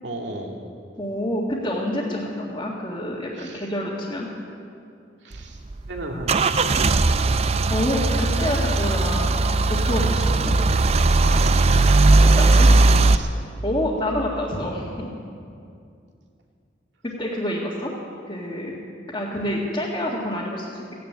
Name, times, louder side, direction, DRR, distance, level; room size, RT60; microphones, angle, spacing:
voice 1, 0.0-0.6 3.3-3.7 5.2-5.6 5.9-7.2 11.2-11.9 12.3-13.4, right 1 dB, 75° right, 0 dB, 2.4 m, -35 dB
voice 2, 1.0-4.3 7.7-9.4 9.7-10.6 12.2-12.7 13.6-15.1 17.0-17.9 18.3-18.8 19.1-20.8, left 1 dB, 25° left, -7 dB, 2.0 m, -27 dB
Car / Engine starting / Idling, 5.3-13.2, right 2 dB, 35° right, 0.5 m, -18 dB
15.5 x 10.5 x 8.7 m, 2.4 s
head